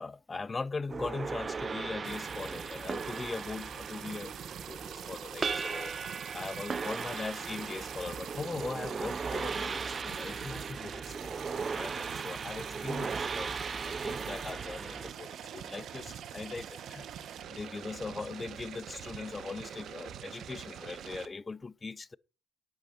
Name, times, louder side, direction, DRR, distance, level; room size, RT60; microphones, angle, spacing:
voice 1, 0.0-5.9 6.3-13.5 13.8-17.1 17.5-22.2, left 4 dB, 25° left, 0.4 m, -40 dB
sound 1, 0.9-15.1, right 5 dB, 35° right, 0.4 m, -37 dB
sound 2, 2.0-21.3, right 9 dB, 65° right, 1.0 m, -44 dB
9.9 x 7.9 x 4.0 m
cardioid pair, 95°, 0 cm